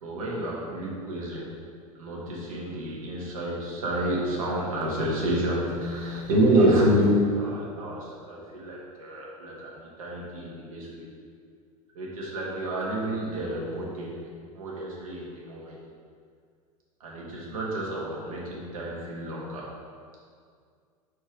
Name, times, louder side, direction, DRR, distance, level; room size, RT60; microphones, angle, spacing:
voice 1, 0.0-1.5 2.0-11.1 11.9-15.8 17.0-19.7, right 1 dB, 65° right, -4 dB, 1.4 m, -28 dB
4.8 x 4.3 x 5.2 m, 2.1 s
figure-of-eight pair, 85°, 19 cm